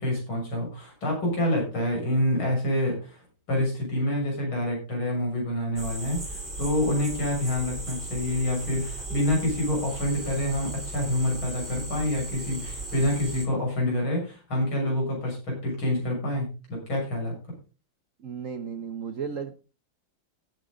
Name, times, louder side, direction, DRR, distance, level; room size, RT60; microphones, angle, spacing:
voice 1, 0.0-3.2 3.5-17.3, left 1 dB, 90° left, 7.4 m, -27 dB
sound 1, 5.8-13.5, right 2 dB, 25° right, 3.8 m, -37 dB
voice 2, 18.2-19.6, right 6 dB, 55° right, 0.9 m, -34 dB
15.0 x 9.2 x 3.9 m
omnidirectional pair, 2.2 m